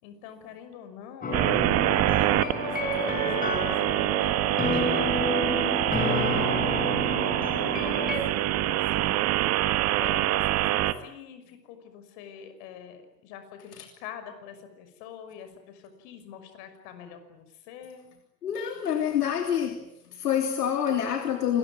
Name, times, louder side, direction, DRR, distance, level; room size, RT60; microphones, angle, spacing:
voice 1, 0.0-1.4 1.9-7.1 7.6-9.2 10.0-18.1, left 8 dB, 45° left, 8 dB, 6.0 m, -45 dB
sound 1, 1.2-8.2, left 2 dB, 15° left, 6.8 m, -30 dB
sound 2, 1.3-10.9, right 14 dB, 30° right, 1.4 m, -25 dB
voice 2, 18.4-19.8 20.1-21.6, left 9 dB, 70° left, 4 dB, 3.4 m, -27 dB
28.0 x 21.5 x 9.7 m, 0.86 s
figure-of-eight pair, 100°, 49 cm